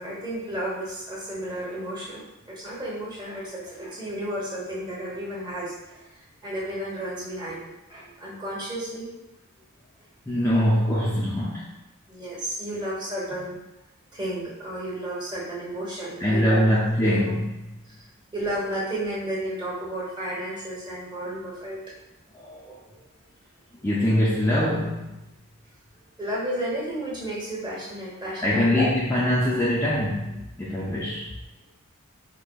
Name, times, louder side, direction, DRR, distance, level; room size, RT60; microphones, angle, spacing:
voice 1, 0.0-6.1 6.4-7.6 7.9-9.1 12.1-13.6 14.1-16.6 17.0-17.3 18.3-21.8 26.2-28.9, right 1 dB, 20° right, -8 dB, 1.0 m, -32 dB
voice 2, 10.3-11.7 13.3-13.4 16.2-17.7 22.3-22.8 23.8-25.2 28.4-31.3, left 1 dB, 15° left, -7 dB, 0.3 m, -23 dB
4.8 x 2.0 x 2.2 m, 0.94 s
head